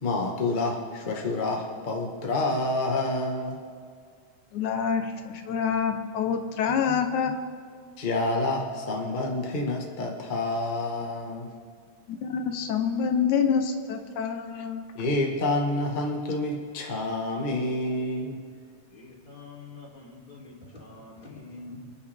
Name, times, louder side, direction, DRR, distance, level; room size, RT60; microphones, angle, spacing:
voice 1, 0.0-3.6 8.0-11.5 14.9-18.4, left 2 dB, 45° left, 0 dB, 0.6 m, -28 dB
voice 2, 4.5-7.4 12.1-14.8, left 7 dB, 80° left, 6 dB, 2.3 m, -27 dB
voice 3, 18.9-21.8, left 3 dB, 15° left, -4 dB, 2.9 m, -45 dB
28.5 x 10.5 x 3.5 m, 2.1 s
omnidirectional pair, 3.4 m